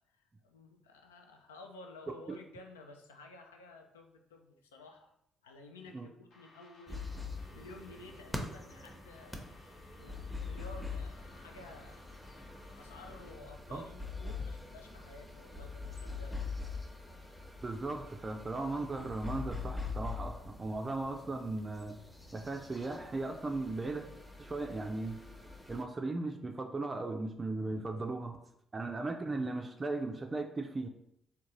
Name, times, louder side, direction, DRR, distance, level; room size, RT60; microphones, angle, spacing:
voice 1, 0.0-5.1 5.4-7.1 7.5-9.5 10.0-12.0 12.8-16.5, left 2 dB, 85° left, 4 dB, 0.3 m, -53 dB
sound 1, 6.3-13.3, left 2 dB, 65° left, 0.8 m, -61 dB
sound 2, 6.9-25.8, left 4 dB, 5° left, 0.7 m, -44 dB
voice 2, 17.6-22.0 22.3-24.0 24.4-25.2 25.7-28.4 28.7-30.9, right 2 dB, 30° right, 4 dB, 0.4 m, -37 dB
3.6 x 2.2 x 3.0 m, 0.75 s
hypercardioid pair, 45°, 0 cm